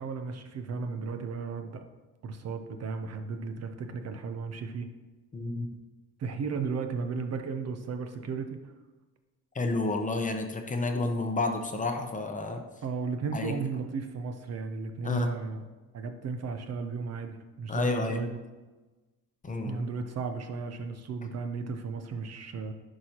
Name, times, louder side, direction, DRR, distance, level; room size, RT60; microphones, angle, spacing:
voice 1, 0.0-1.8 2.2-4.9 6.2-8.6 12.8-15.7 15.9-18.4 19.6-22.7, right 5 dB, 50° right, 7 dB, 0.7 m, -35 dB
voice 2, 5.3-5.7 9.5-12.6 13.3-13.5 15.0-15.3 17.7-18.2 19.4-19.8, left 3 dB, 25° left, 4 dB, 0.7 m, -30 dB
10.0 x 4.7 x 2.9 m, 1.2 s
cardioid pair, 120°, 34 cm